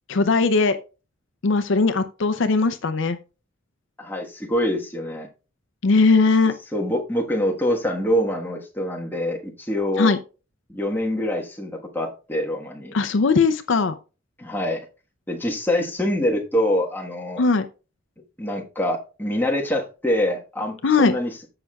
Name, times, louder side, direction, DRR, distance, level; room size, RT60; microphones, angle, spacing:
voice 1, 0.1-0.8 1.4-3.2 5.8-6.5 10.0-10.2 12.9-13.9 17.4-17.6 20.8-21.1, left 4 dB, 60° left, 10 dB, 0.5 m, -19 dB
voice 2, 4.0-5.3 6.7-10.1 10.7-12.9 14.4-14.8 15.3-17.4 18.4-21.4, left 1 dB, 10° left, 0 dB, 1.3 m, -25 dB
14.0 x 5.8 x 2.3 m, 0.32 s
head